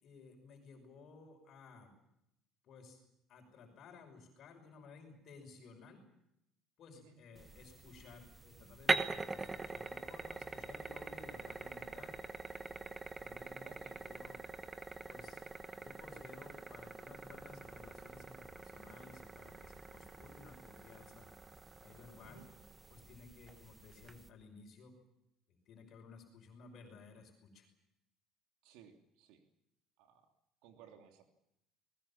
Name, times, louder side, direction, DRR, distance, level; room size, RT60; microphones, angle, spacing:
voice 1, 0.0-1.9 2.6-3.0 3.3-6.0 6.8-12.2 13.2-14.6 15.1-21.6 21.8-22.4 22.9-25.0 25.5-27.7, left 4 dB, 40° left, 3 dB, 5.8 m, -57 dB
sound 1, 7.4-24.3, right 3 dB, 15° right, 1.1 m, -43 dB
voice 2, 13.6-14.0 22.2-22.5 28.6-29.4 30.0-30.3 30.6-31.3, right 7 dB, 85° right, 4 dB, 3.0 m, -59 dB
28.5 x 21.0 x 7.3 m, 0.81 s
cardioid pair, 175°, 0 cm